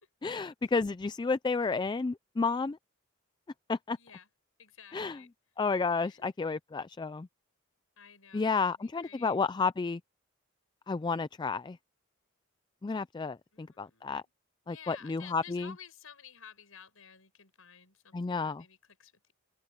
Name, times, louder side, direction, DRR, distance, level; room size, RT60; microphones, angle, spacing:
voice 1, 0.2-2.8 3.7-4.0 4.9-5.2 5.6-7.3 8.3-10.0 10.9-11.8 12.8-14.2 14.7-15.7 18.1-18.6, left 4 dB, 20° left, 0.3 m, -31 dB
voice 2, 4.0-4.3 4.6-5.3 6.0-6.3 8.0-9.4 12.9-13.0 13.5-14.3 14.6-19.3, left 8 dB, 80° left, 6.2 m, -54 dB
head